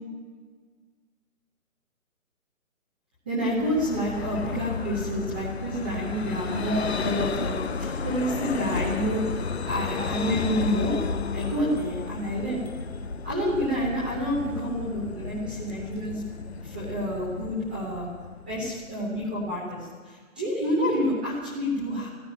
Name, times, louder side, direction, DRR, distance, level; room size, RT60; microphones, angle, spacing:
voice 1, 3.3-10.9 11.3-12.6 13.2-16.2 16.6-18.1 18.5-22.1, equal, 5° right, -8 dB, 0.8 m, -28 dB
Vehicle, 3.4-18.9, left 5 dB, 50° left, 0.8 m, -33 dB
14.0 x 12.0 x 8.5 m, 1.5 s
hypercardioid pair, 170°, 42 cm